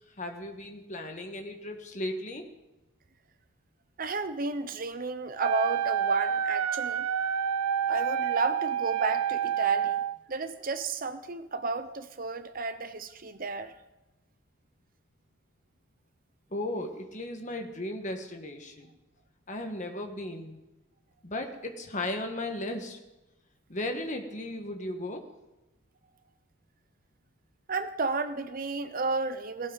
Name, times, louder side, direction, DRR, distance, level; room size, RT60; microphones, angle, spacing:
voice 1, 0.2-2.4 16.5-18.9 19.5-20.6 21.2-23.0 23.7-25.2, left 1 dB, 35° left, 4 dB, 1.6 m, -36 dB
voice 2, 4.0-7.0 7.9-10.0 10.3-13.7 27.7-29.7, right 3 dB, 40° right, 10 dB, 0.7 m, -32 dB
Wind instrument woodwind instrument, 5.4-10.2, right 8 dB, 90° right, 0.5 m, -28 dB
17.5 x 17.0 x 4.1 m, 1.0 s
head